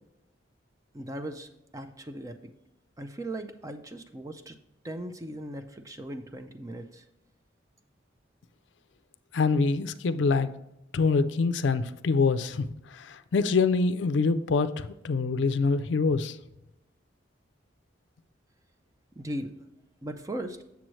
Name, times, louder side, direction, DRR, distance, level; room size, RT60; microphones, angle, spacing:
voice 1, 0.9-2.4 3.0-4.6 4.8-7.0 19.2-19.5 20.0-20.6, right 1 dB, 15° right, 8 dB, 0.4 m, -38 dB
voice 2, 9.3-10.5 10.9-12.6 12.9-16.4, left 4 dB, 70° left, 11 dB, 0.4 m, -25 dB
7.5 x 7.0 x 3.1 m, 0.90 s
head